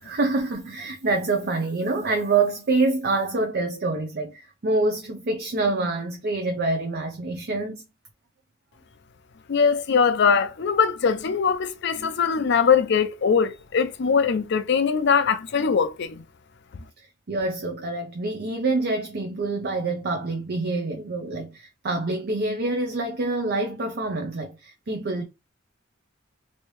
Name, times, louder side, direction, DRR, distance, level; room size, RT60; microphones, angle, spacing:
voice 1, 0.0-7.8 17.0-25.2, right 3 dB, 55° right, 0.6 m, -26 dB
voice 2, 9.5-16.2, left 6 dB, 60° left, 0.5 m, -21 dB
3.1 x 2.7 x 3.1 m
head